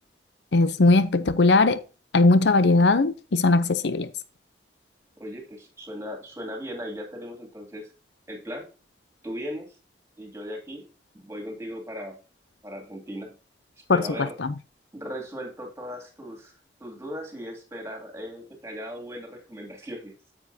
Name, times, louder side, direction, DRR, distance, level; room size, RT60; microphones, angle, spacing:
voice 1, 0.5-1.8 2.1-4.1 13.9-14.5, left 3 dB, 75° left, 0.7 m, -19 dB
voice 2, 5.2-7.9 8.3-8.7 9.2-9.8 10.2-10.8 11.1-12.2 12.6-13.3 13.9-14.4 14.9-16.5 16.8-20.1, equal, 15° right, 2.6 m, -37 dB
9.1 x 7.3 x 2.8 m
head